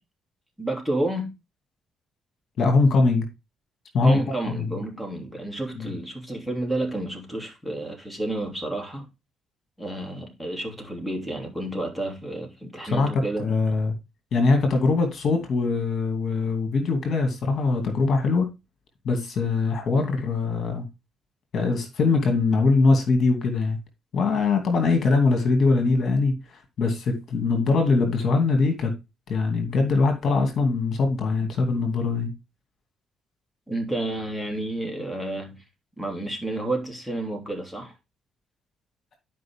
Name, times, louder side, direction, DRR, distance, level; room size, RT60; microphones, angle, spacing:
voice 1, 0.6-1.3 4.0-9.0 9.8-13.5 33.7-35.6 36.0-37.9, right 1 dB, 5° left, 3.0 m, -30 dB
voice 2, 2.6-3.3 3.9-4.2 4.5-4.8 5.8-5.9 12.8-13.1 13.4-13.9 14.3-18.5 19.0-20.9 21.5-23.8 24.1-28.9 29.3-32.3, left 3 dB, 60° left, 2.7 m, -22 dB
11.0 x 5.5 x 3.7 m
cardioid pair, 90°, 0 cm